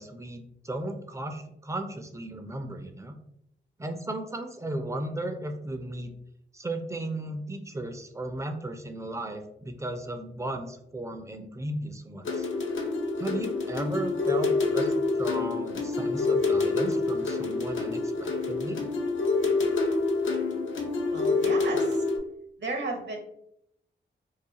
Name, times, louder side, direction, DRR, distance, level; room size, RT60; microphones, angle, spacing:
voice 1, 0.0-3.1 3.8-6.1 6.5-12.5 13.2-18.8, right 1 dB, 15° right, 6 dB, 0.4 m, -35 dB
sound 1, 12.2-22.2, left 3 dB, 70° left, 0.6 m, -27 dB
voice 2, 21.1-22.0 22.6-23.2, right 3 dB, 60° right, 2 dB, 0.8 m, -34 dB
2.4 x 2.3 x 2.7 m, 0.75 s
cardioid pair, 45°, 21 cm